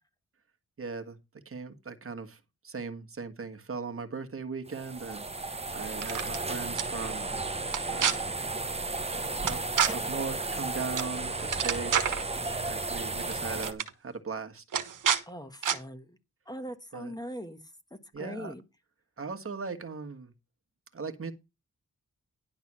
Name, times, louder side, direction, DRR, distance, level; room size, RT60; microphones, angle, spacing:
voice 1, 0.8-1.2 1.5-2.4 2.6-5.3 5.7-7.3 7.9-8.2 9.3-9.6 9.9-11.9 12.6-14.6 16.9-17.1 18.1-18.5 19.2-20.3 20.9-21.3, right 4 dB, 45° right, 1.7 m, -38 dB
sound 1, 4.7-13.7, right 3 dB, 20° right, 1.0 m, -34 dB
sound 2, 5.9-6.4 6.8-6.9 7.7-8.1 9.5-9.9 11.0-11.1 11.4-12.2 13.2-13.3 13.6-13.9 14.7-15.2 15.6-15.8, right 8 dB, 80° right, 1.2 m, -27 dB
voice 2, 15.3-16.2 16.5-17.6 17.9-18.6, equal, 10° left, 1.3 m, -41 dB
11.0 x 3.9 x 7.5 m
wide cardioid pair, 95°, 31 cm